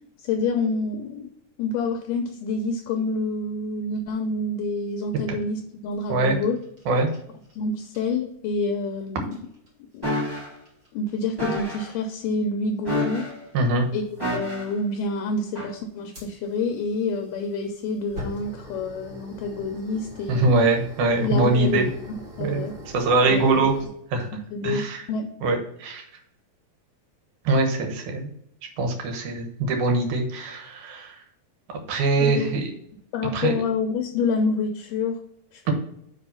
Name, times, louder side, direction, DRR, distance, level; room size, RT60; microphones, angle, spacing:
voice 1, 0.2-1.3 1.6-6.6 7.5-9.4 9.9-10.0 10.9-13.3 13.9-14.0 14.3-20.5 21.2-22.7 23.2-23.4 24.3-25.3 32.2-32.6 33.1-35.2 35.5-35.7, left 3 dB, 75° left, 5 dB, 2.1 m, -27 dB
sound 1, 5.9-7.5 7.8-8.0 9.2-9.7 10.2-10.4 10.6-11.1 11.4-11.5 11.8-12.2 13.3-13.4 14.1-14.3 16.1-23.8, left 1 dB, 30° right, 2.2 m, -42 dB
sound 2, 10.0-10.5 11.4-11.9 12.8-13.5 14.2-14.8 15.5-15.7, left 1 dB, 10° right, 1.0 m, -28 dB
voice 2, 13.5-13.9 20.3-21.9 22.4-22.6 22.9-23.7 24.1-24.3 24.6-25.0 25.4-26.0 27.4-28.3 28.8-31.2 31.9-32.7 33.3-33.5, right 3 dB, 65° right, 3 dB, 2.5 m, -22 dB
5.4 x 5.3 x 5.5 m, 0.73 s
omnidirectional pair, 4.2 m